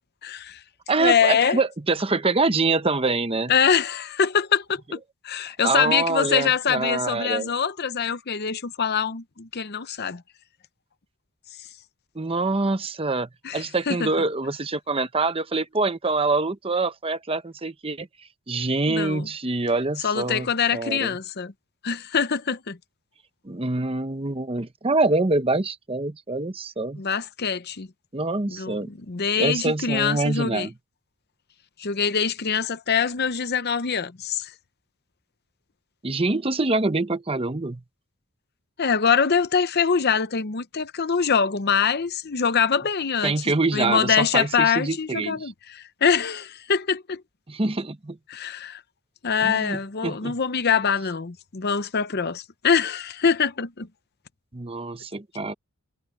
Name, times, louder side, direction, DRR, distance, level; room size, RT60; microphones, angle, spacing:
voice 1, 0.2-0.6 1.0-1.6 3.5-10.2 13.4-14.1 18.9-19.3 20.0-21.5 21.8-22.8 27.0-27.9 28.5-30.7 31.8-34.5 38.8-43.3 43.7-47.2 48.3-48.8 49.2-53.9, left 6 dB, 45° left, 0.7 m, -24 dB
voice 2, 0.9-3.5 5.6-7.5 12.1-18.1 18.5-21.2 23.4-27.0 28.1-28.9 29.4-30.7 36.0-37.8 43.2-45.5 47.5-48.2 49.4-50.4 54.5-55.5, right 3 dB, 25° right, 0.8 m, -25 dB
head